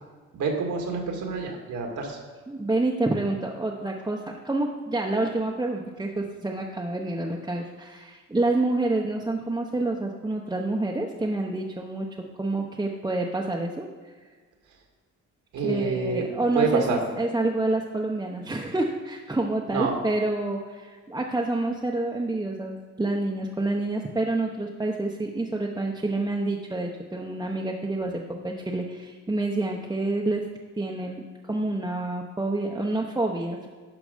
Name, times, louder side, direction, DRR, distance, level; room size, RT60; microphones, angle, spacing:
voice 1, 0.3-2.2 15.5-16.2 16.5-17.0 19.7-19.9, right 4 dB, 75° right, 2 dB, 2.0 m, -27 dB
voice 2, 2.5-4.2 4.4-13.9 15.6-30.4 30.8-31.2 31.5-33.7, right 2 dB, 10° right, -1 dB, 0.9 m, -28 dB
11.5 x 5.1 x 5.1 m, 1.5 s
cardioid pair, 90°, 30 cm